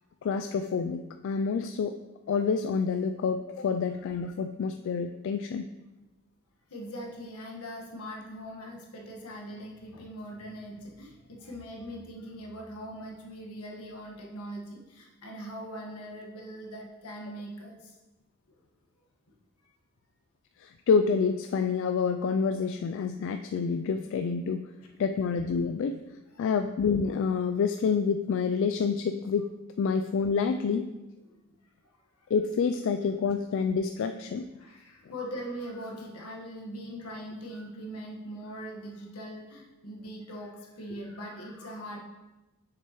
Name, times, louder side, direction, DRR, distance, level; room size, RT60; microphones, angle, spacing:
voice 1, 0.2-1.9 2.3-5.7 20.6-24.7 25.0-26.0 26.4-29.5 29.8-30.9 32.3-34.4, left 5 dB, 60° left, 7 dB, 0.3 m, -28 dB
voice 2, 6.7-17.9 26.3-26.5 31.8-32.3 34.6-42.0, equal, 80° left, -1 dB, 1.4 m, -41 dB
7.5 x 6.6 x 3.1 m, 1.1 s
head